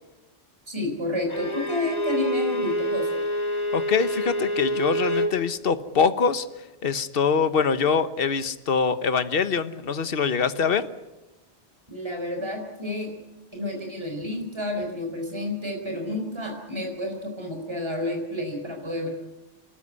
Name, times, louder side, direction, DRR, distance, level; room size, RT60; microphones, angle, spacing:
voice 1, 0.7-3.2 11.9-13.1 13.5-19.1, left 1 dB, 25° right, 2 dB, 4.4 m, -30 dB
Bowed string instrument, 1.3-5.4, equal, 40° left, 2.2 m, -27 dB
voice 2, 3.7-6.5 6.8-10.9, left 6 dB, 60° left, 12 dB, 1.3 m, -24 dB
29.0 x 13.0 x 9.7 m, 1.0 s
omnidirectional pair, 1.1 m